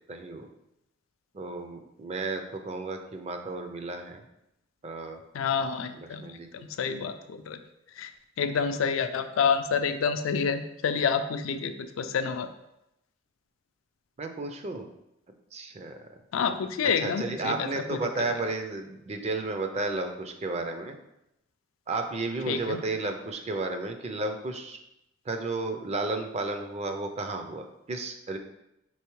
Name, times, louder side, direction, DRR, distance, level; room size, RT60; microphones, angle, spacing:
voice 1, 0.1-0.5 1.3-4.2 4.8-5.2 6.0-6.5 14.2-14.9 15.5-16.0 17.0-21.0 21.9-24.8 25.3-28.4, right 3 dB, 35° right, 6 dB, 0.4 m, -33 dB
voice 2, 5.3-6.2 6.8-7.6 8.0-8.1 8.4-12.5 16.3-18.1 22.5-22.8, left 6 dB, 75° left, 9 dB, 0.4 m, -28 dB
4.6 x 3.4 x 3.0 m, 0.85 s
head